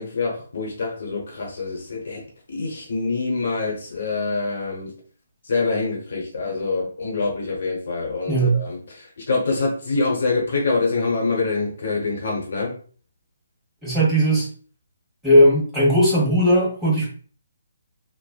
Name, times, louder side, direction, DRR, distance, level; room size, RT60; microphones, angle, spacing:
voice 1, 0.0-2.2 2.5-4.9 5.4-12.7, left 3 dB, 55° left, -1 dB, 0.9 m, -25 dB
voice 2, 8.3-8.6 13.8-14.5 15.2-17.1, equal, 5° right, -8 dB, 1.0 m, -17 dB
3.2 x 2.0 x 2.3 m, 0.42 s
figure-of-eight pair, 140°, 0 cm